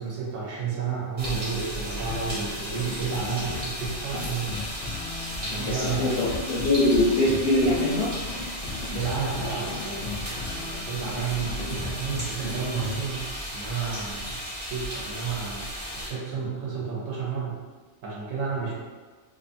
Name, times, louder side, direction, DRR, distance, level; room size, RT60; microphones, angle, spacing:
voice 1, 0.0-4.5 5.4-6.1 8.9-15.7 15.9-17.6 18.0-18.8, right 6 dB, 80° right, -4 dB, 1.0 m, -31 dB
sound 1, 1.2-16.1, equal, 25° right, 0.9 m, -35 dB
sound 2, 2.1-13.1, left 4 dB, 85° left, 1.0 m, -37 dB
voice 2, 5.6-8.1, left 1 dB, 60° left, -8 dB, 0.7 m, -23 dB
2.5 x 2.5 x 2.5 m, 1.4 s
omnidirectional pair, 1.3 m